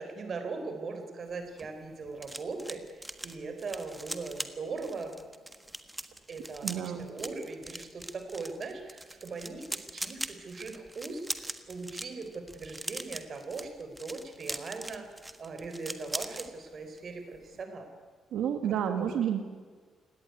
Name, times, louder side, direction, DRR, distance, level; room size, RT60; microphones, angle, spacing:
voice 1, 0.0-5.2 6.3-17.9 18.6-19.3, right 4 dB, 40° right, 6 dB, 4.1 m, -40 dB
sound 1, 1.3-16.5 16.8-17.1 17.3-17.6, right 1 dB, 10° right, 1.4 m, -41 dB
voice 2, 6.6-7.1 18.3-19.4, right 9 dB, 90° right, 6 dB, 2.2 m, -30 dB
29.0 x 18.0 x 9.6 m, 1.6 s
cardioid pair, 160°, 0 cm